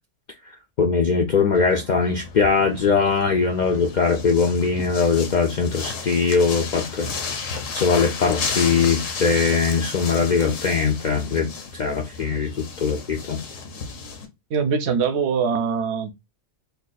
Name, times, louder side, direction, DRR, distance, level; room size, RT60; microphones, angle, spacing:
voice 1, 0.8-7.1 7.7-11.5 11.8-13.4, left 5 dB, 65° left, 0.4 m, -21 dB
sound 1, 1.5-14.3, left 5 dB, 85° left, 1.1 m, -33 dB
voice 2, 14.5-16.1, right 6 dB, 65° right, 0.8 m, -22 dB
2.9 x 2.3 x 3.9 m
omnidirectional pair, 1.3 m